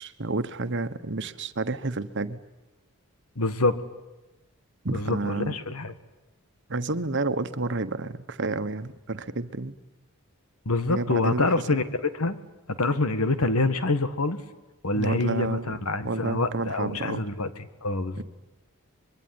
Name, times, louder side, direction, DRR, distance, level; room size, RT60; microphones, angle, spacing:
voice 1, 0.0-2.4 4.8-5.6 6.7-9.7 10.9-11.6 14.9-17.2 18.2-18.3, right 2 dB, 55° right, 11 dB, 1.3 m, -30 dB
voice 2, 3.3-3.8 4.9-5.9 10.6-12.4 12.7-14.4 14.8-17.5 17.8-18.2, left 2 dB, 80° left, 12 dB, 1.7 m, -26 dB
24.0 x 23.0 x 9.7 m, 1.1 s
head